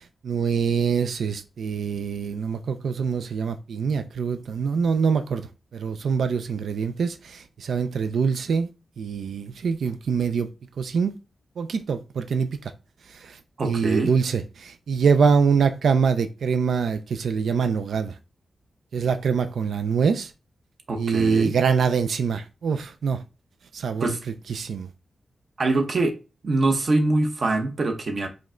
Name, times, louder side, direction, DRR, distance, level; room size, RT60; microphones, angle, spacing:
voice 1, 0.2-5.4 5.7-8.7 9.0-10.5 10.8-11.1 11.6-12.5 13.6-18.1 18.9-20.3 21.0-23.2 23.7-24.1 24.5-24.9, right 5 dB, 85° right, 0.3 m, -24 dB
voice 2, 13.6-14.1 20.9-21.6 24.0-24.2 25.6-26.1 26.4-28.3, right 2 dB, 45° right, 0.8 m, -23 dB
5.0 x 2.1 x 3.6 m
wide cardioid pair, 150°, 0 cm